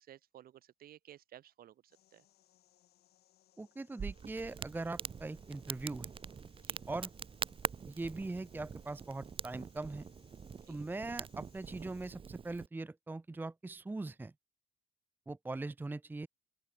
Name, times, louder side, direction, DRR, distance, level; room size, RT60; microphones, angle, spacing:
voice 1, 0.0-2.3 6.6-6.8 10.6-10.8, right 12 dB, 60° right, 3.4 m, -56 dB
sound 1, 1.9-12.1, left 13 dB, 70° left, 6.8 m, -71 dB
voice 2, 3.6-6.1 6.9-7.1 7.9-10.1 10.7-14.3 15.3-16.3, right 2 dB, 10° right, 0.8 m, -41 dB
Crackle, 4.0-12.7, right 6 dB, 30° right, 1.3 m, -44 dB
open air
cardioid pair, 110°, 17 cm